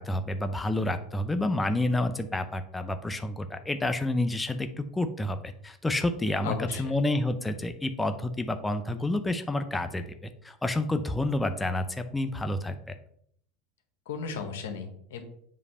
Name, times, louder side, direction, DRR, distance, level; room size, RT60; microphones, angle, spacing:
voice 1, 0.0-10.0 10.4-12.8, left 1 dB, 10° left, 8 dB, 0.6 m, -29 dB
voice 2, 6.4-7.0 14.1-15.2, left 5 dB, 85° left, 6 dB, 1.3 m, -35 dB
7.4 x 3.3 x 5.5 m, 0.67 s
supercardioid pair, 105°, 0 cm